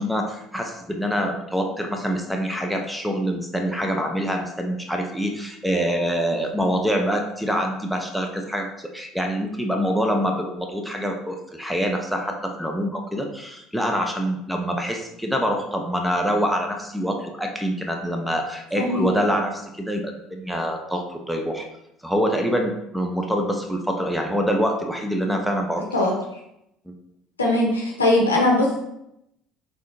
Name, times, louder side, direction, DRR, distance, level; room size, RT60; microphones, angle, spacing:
voice 1, 0.0-21.7 22.0-25.8 26.9-27.0, equal, ahead, 3 dB, 0.5 m, -25 dB
voice 2, 27.4-28.8, left 1 dB, 80° left, -1 dB, 0.7 m, -20 dB
3.6 x 3.3 x 2.6 m, 0.81 s
figure-of-eight pair, 60°, 0 cm